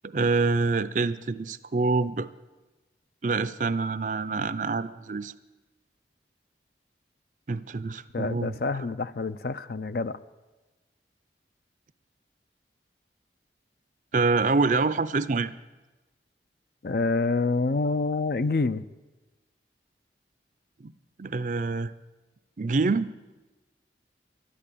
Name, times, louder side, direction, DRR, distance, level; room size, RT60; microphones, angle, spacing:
voice 1, 0.0-2.3 3.2-5.3 7.5-8.5 14.1-15.5 20.8-20.9 21.2-21.9 22.6-23.1, right 3 dB, 45° right, 15 dB, 0.5 m, -26 dB
voice 2, 8.1-10.2 16.8-18.8, left 3 dB, 55° left, 14 dB, 0.5 m, -27 dB
12.5 x 11.0 x 8.4 m, 1.2 s
head